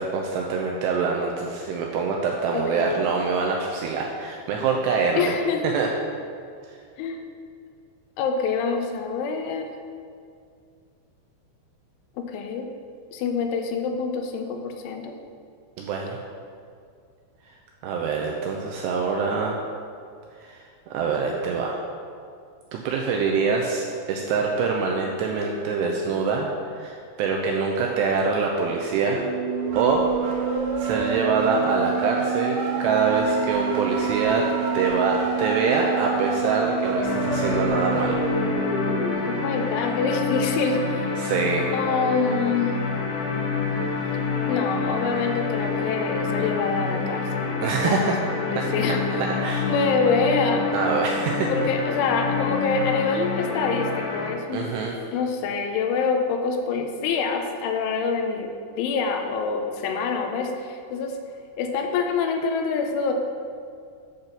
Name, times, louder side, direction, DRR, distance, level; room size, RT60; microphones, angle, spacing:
voice 1, 0.0-5.3 5.6-5.9 15.8-16.2 17.8-19.6 20.4-20.6 20.9-21.8 22.7-29.3 29.8-30.1 30.5-34.4 34.7-38.2 41.2-41.6 44.0-44.1 47.6-48.1 48.6-49.8 50.7-51.5 54.5-55.0, right 5 dB, 85° right, 0 dB, 2.5 m, -25 dB
voice 2, 2.5-3.0 5.2-5.7 7.0-7.2 8.2-9.7 12.2-12.7 13.1-15.1 39.3-41.1 41.7-42.8 44.5-49.3 49.6-50.7 51.5-54.6 55.1-61.2 61.6-63.1, left 5 dB, 90° left, 4 dB, 3.2 m, -26 dB
sound 1, 29.1-39.1, right 5 dB, 65° right, 2.3 m, -27 dB
sound 2, 37.0-54.3, left 4 dB, 75° left, 2.6 m, -27 dB
8.8 x 4.0 x 6.7 m, 2.3 s
omnidirectional pair, 5.4 m